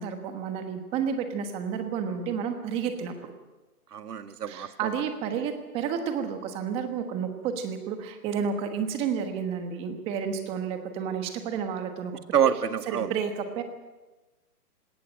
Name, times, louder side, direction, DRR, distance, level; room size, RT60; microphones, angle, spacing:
voice 1, 0.0-3.3 4.5-12.5 12.9-13.6, right 7 dB, 10° right, 7 dB, 1.2 m, -31 dB
voice 2, 3.9-4.9 12.3-13.1, right 8 dB, 75° right, 10 dB, 1.9 m, -26 dB
20.0 x 17.5 x 8.9 m, 1.2 s
hypercardioid pair, 160°, 47 cm